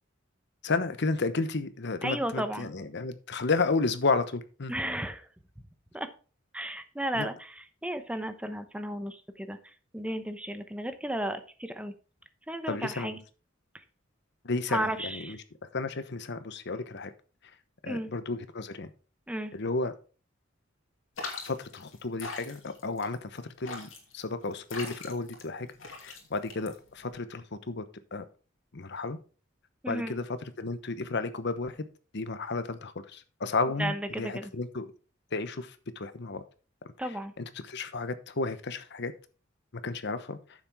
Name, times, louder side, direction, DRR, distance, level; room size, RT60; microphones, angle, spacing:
voice 1, 0.6-4.7 7.1-7.3 12.7-13.2 14.4-15.4 15.7-17.1 17.8-18.9 19.5-19.9 21.4-25.7 26.0-27.8 28.1-28.2 28.7-29.2 29.9-31.9 32.1-34.9 35.3-36.4 37.0-39.1 39.8-40.4, left 3 dB, 60° left, 11 dB, 1.0 m, -32 dB
voice 2, 2.0-2.7 4.7-5.3 5.9-6.1 6.5-11.9 12.5-13.2 14.7-15.4 17.8-18.1 19.3-19.5 29.8-30.2 33.8-34.5 37.0-37.3, right 1 dB, 5° right, 9 dB, 0.9 m, -34 dB
sound 1, 21.2-27.1, left 3 dB, 80° left, 2.6 m, -42 dB
9.5 x 7.4 x 3.6 m, 0.37 s
head